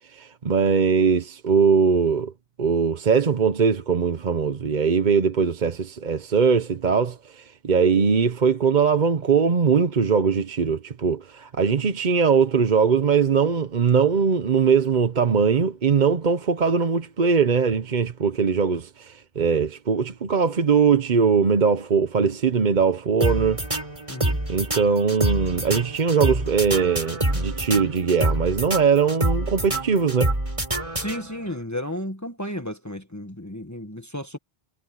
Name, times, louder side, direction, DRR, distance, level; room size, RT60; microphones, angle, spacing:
voice 1, 0.1-2.3 2.6-23.6 24.5-30.3, right 6 dB, 50° right, 1.0 m, -21 dB
sound 1, 23.2-31.5, right 1 dB, 30° right, 4.3 m, -27 dB
voice 2, 31.0-34.4, left 1 dB, 15° left, 1.5 m, -33 dB
omnidirectional pair, 1.1 m